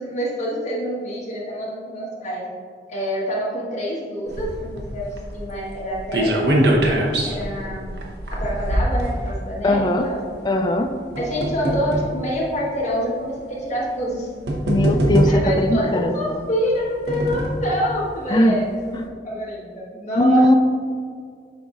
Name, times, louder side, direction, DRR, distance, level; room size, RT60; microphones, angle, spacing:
voice 1, 0.0-2.5 2.9-8.0 8.3-10.2 11.2-14.3 15.3-19.0 19.2-20.6, equal, 40° left, -6 dB, 1.4 m, -26 dB
sound 1, 4.3-9.7 10.6-12.2 13.0-13.1 14.0-14.1 14.5-15.7 16.6-17.7 18.1-18.2 18.5-18.6, equal, 65° right, 0.8 m, -22 dB
voice 2, 9.6-10.0 10.4-10.9 14.6-16.4 18.3-18.6 18.9-19.0 20.2-20.5, left 1 dB, 25° left, 4 dB, 0.3 m, -19 dB
9.6 x 4.0 x 2.5 m, 2.1 s
head